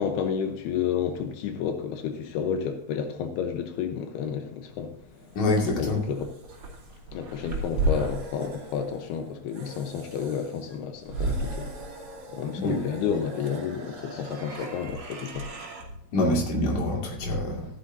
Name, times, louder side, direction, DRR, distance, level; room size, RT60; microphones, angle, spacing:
voice 1, 0.0-4.9 5.8-6.3 7.1-11.7 12.3-15.5, left 7 dB, 90° left, 6 dB, 3.1 m, -31 dB
sound 1, 4.8-15.8, right 2 dB, 40° right, 3.0 m, -35 dB
voice 2, 5.4-6.0 12.6-12.8 16.1-17.7, left 2 dB, 50° left, -1 dB, 3.5 m, -25 dB
14.0 x 11.5 x 2.8 m, 0.66 s
omnidirectional pair, 4.4 m